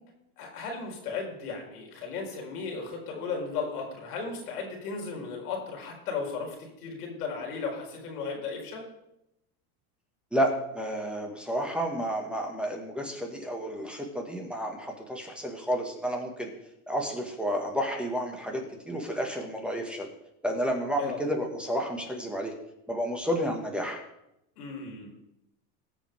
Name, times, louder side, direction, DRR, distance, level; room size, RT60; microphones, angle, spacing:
voice 1, 0.4-8.9 21.0-21.2 24.6-25.1, left 5 dB, 90° left, 1 dB, 3.8 m, -35 dB
voice 2, 10.3-16.5 16.9-20.1 20.4-22.5 22.9-24.0, equal, ahead, 1 dB, 1.9 m, -31 dB
19.0 x 7.3 x 3.7 m, 0.83 s
supercardioid pair, 115°, 44 cm